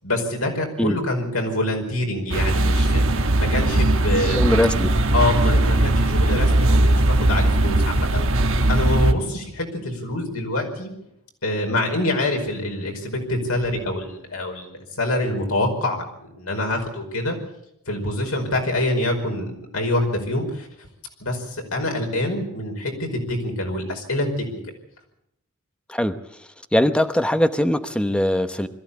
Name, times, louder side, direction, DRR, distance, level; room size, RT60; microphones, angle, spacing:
voice 1, 0.0-4.4 5.1-8.3 8.7-10.9 11.4-16.1 16.3-17.4 17.9-20.7 21.2-24.6, left 1 dB, 85° left, 2 dB, 5.2 m, -25 dB
sound 1, 2.3-9.1, right 1 dB, 65° right, 1.5 m, -19 dB
voice 2, 4.3-4.9 25.9-26.1 26.7-28.7, left 1 dB, 5° left, 9 dB, 0.9 m, -20 dB
21.5 x 14.0 x 8.5 m, 0.79 s
head